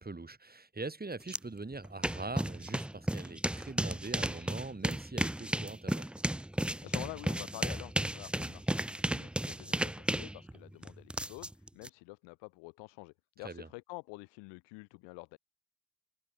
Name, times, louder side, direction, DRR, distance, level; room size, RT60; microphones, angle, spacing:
voice 1, 0.0-6.1 13.4-13.7, right 3 dB, 20° right, 7.1 m, -42 dB
sound 1, 1.3-1.4 1.7-11.9, right 1 dB, 5° right, 0.4 m, -34 dB
voice 2, 6.7-8.8 9.1-15.4, left 29 dB, 85° left, 2.8 m, -48 dB
supercardioid pair, 55°, 41 cm